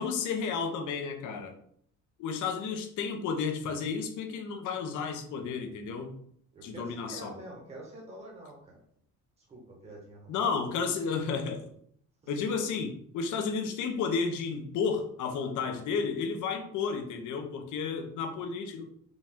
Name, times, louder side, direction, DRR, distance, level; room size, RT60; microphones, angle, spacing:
voice 1, 0.0-1.5 2.2-6.1 6.6-7.4 10.3-11.6 12.3-18.9, left 5 dB, 60° left, 5 dB, 0.7 m, -32 dB
voice 2, 6.5-8.8 9.4-10.5, right 1 dB, 20° right, -3 dB, 0.9 m, -47 dB
5.1 x 2.2 x 3.6 m, 0.64 s
cardioid pair, 180°, 34 cm